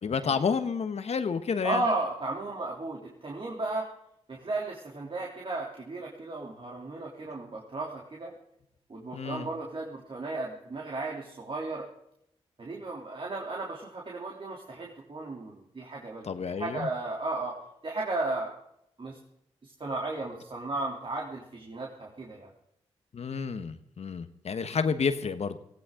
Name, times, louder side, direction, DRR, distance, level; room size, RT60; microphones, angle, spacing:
voice 1, 0.0-1.8 9.1-9.5 16.2-16.9 23.1-25.6, left 5 dB, 65° left, 10 dB, 1.4 m, -30 dB
voice 2, 1.6-3.9 4.3-8.3 8.9-11.9 12.6-17.6 17.8-18.6 19.0-19.2 19.6-22.5, right 2 dB, 50° right, -2 dB, 3.3 m, -34 dB
18.0 x 16.0 x 3.9 m, 0.76 s
supercardioid pair, 45°, 12 cm